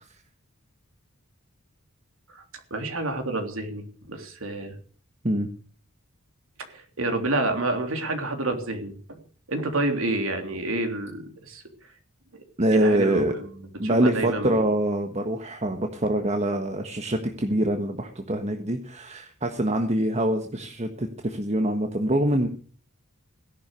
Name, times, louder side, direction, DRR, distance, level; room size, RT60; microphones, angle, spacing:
voice 1, 2.7-4.7 7.0-9.2 9.5-11.6 12.7-13.2 13.8-14.6, right 2 dB, 65° right, 5 dB, 3.3 m, -28 dB
voice 2, 12.6-13.3 13.8-22.5, right 1 dB, 30° right, 5 dB, 1.4 m, -24 dB
17.5 x 11.5 x 6.6 m, 0.43 s
head